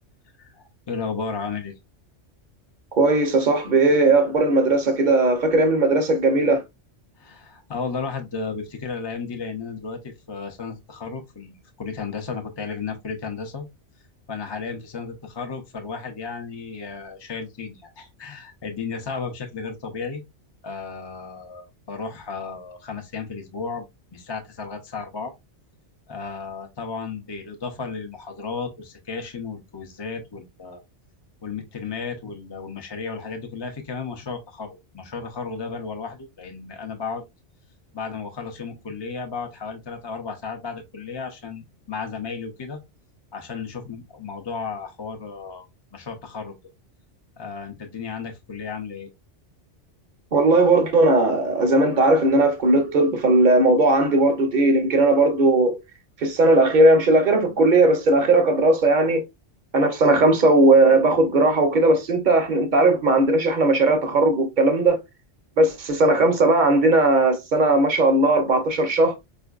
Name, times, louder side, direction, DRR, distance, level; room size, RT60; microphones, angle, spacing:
voice 1, 0.4-1.8 7.2-13.7 14.3-20.2 20.6-25.3 26.1-30.8 31.4-37.2 37.9-42.8 43.3-45.7 45.9-46.6 47.4-49.1, left 5 dB, 35° left, 0.4 m, -34 dB
voice 2, 2.9-6.6 50.3-55.8 56.2-59.2 59.7-65.0 65.6-69.2, right 2 dB, 50° right, 0.7 m, -18 dB
4.3 x 2.5 x 2.3 m
omnidirectional pair, 1.2 m